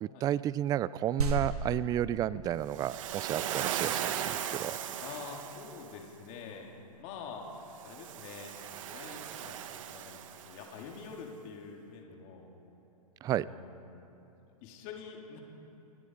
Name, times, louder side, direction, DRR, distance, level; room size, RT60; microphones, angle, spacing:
voice 1, 0.0-4.7 13.2-13.5, right 11 dB, 20° right, 19 dB, 0.4 m, -32 dB
sound 1, 1.2-11.2, right 3 dB, 85° right, 3.2 m, -41 dB
Waves surf, 2.7-5.9 7.7-10.8, right 10 dB, 60° right, 1.5 m, -37 dB
voice 2, 5.0-6.7 7.0-7.5 7.8-8.5 8.9-12.5 13.3-13.8 14.6-15.4, left 5 dB, 40° left, 0 dB, 3.7 m, -46 dB
29.5 x 18.5 x 5.0 m, 3.0 s
hypercardioid pair, 125°, 19 cm